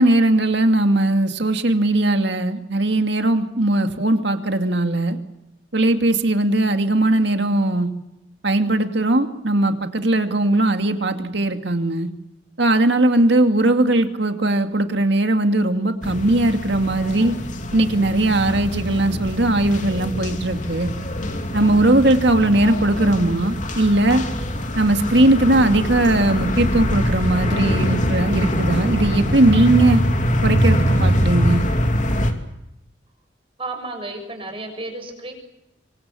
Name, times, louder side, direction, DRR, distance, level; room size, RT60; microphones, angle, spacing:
voice 1, 0.0-5.2 5.7-7.9 8.4-12.1 12.6-17.3 17.7-20.9 21.5-24.2 24.7-30.0 30.4-31.6, right 1 dB, 65° right, 6 dB, 2.4 m, -19 dB
sound 1, 16.0-32.3, equal, 40° left, 2.9 m, -23 dB
voice 2, 33.6-35.3, right 2 dB, 30° right, 4 dB, 6.9 m, -32 dB
27.0 x 25.5 x 7.1 m, 0.93 s
head